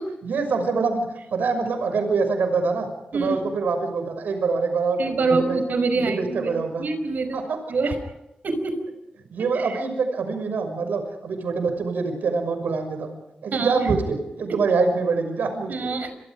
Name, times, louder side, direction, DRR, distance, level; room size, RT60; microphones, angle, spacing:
voice 1, 0.2-2.9 3.1-5.6 5.9-6.8 7.3-7.6 9.3-13.1 13.4-15.9, right 4 dB, 85° right, 7 dB, 6.1 m, -25 dB
voice 2, 3.1-3.4 5.0-6.5 6.8-7.4 7.7-8.0 8.4-8.8 9.5-9.8 13.5-14.0 14.5-14.6 15.7-16.1, right 3 dB, 70° right, 8 dB, 5.4 m, -25 dB
30.0 x 24.5 x 5.0 m, 0.91 s
cardioid pair, 65°, 3 cm